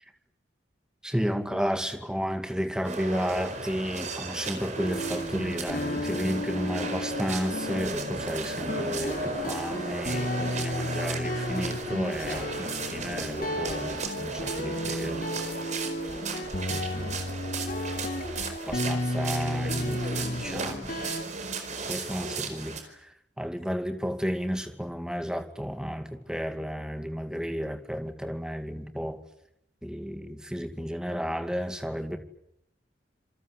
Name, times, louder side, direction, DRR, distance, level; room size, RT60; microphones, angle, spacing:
voice 1, 1.0-15.3 16.7-17.2 18.7-21.1 21.9-29.2 29.8-32.2, equal, 5° right, 7 dB, 2.4 m, -32 dB
sound 1, 2.8-22.8, right 3 dB, 40° right, 4.6 m, -36 dB
sound 2, 4.8-21.2, left 1 dB, 50° left, 2.9 m, -33 dB
27.5 x 23.5 x 8.3 m, 0.76 s
head